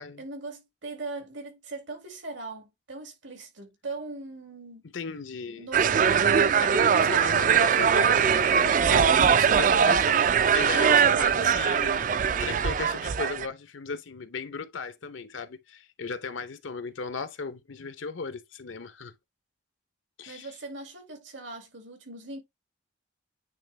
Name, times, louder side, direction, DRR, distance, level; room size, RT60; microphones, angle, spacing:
voice 1, 0.2-4.9 5.6-6.6 20.3-22.4, right 3 dB, 80° right, 2.2 m, -40 dB
voice 2, 4.9-5.7 6.6-12.1 12.4-19.1 20.2-20.5, left 4 dB, 80° left, 0.7 m, -36 dB
sound 1, 5.7-13.5, right 7 dB, 40° right, 0.3 m, -21 dB
9.0 x 3.4 x 3.2 m
head